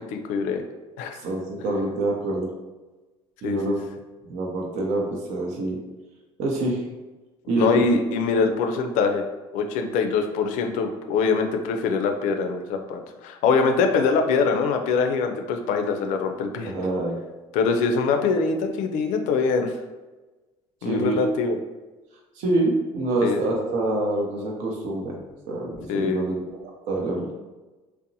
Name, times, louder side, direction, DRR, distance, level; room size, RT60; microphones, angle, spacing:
voice 1, 0.1-0.6 1.0-1.2 3.4-3.7 7.6-9.2 9.5-16.7 17.5-19.7 20.8-21.6 23.2-23.4 25.9-26.2, left 4 dB, 75° left, 5 dB, 0.4 m, -23 dB
voice 2, 1.1-2.5 3.4-3.8 4.2-5.8 6.4-6.8 7.5-7.8 16.7-17.2 20.8-21.2 22.4-25.2 25.5-27.3, right 2 dB, 70° right, -1 dB, 0.7 m, -26 dB
2.7 x 2.0 x 2.6 m, 1.2 s
supercardioid pair, 80°, 13 cm